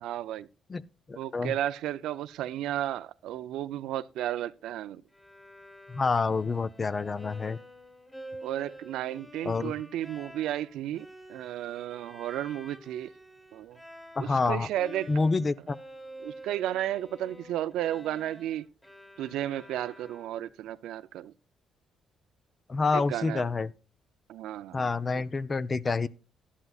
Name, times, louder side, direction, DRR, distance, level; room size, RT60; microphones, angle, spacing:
voice 1, 0.0-0.5 1.2-5.0 8.4-13.1 13.5-13.8 14.2-15.1 16.2-18.7 19.2-21.3 22.9-23.5 24.3-25.2, right 12 dB, 85° right, 0.5 m, -33 dB
voice 2, 1.1-1.5 5.9-7.6 9.4-9.7 14.2-14.7 15.1-15.8 22.7-23.7 24.7-26.1, left 4 dB, 30° left, 0.5 m, -28 dB
Bowed string instrument, 5.1-14.5 14.7-20.6, equal, 10° left, 1.7 m, -49 dB
12.0 x 11.5 x 2.4 m
cardioid pair, 90°, 0 cm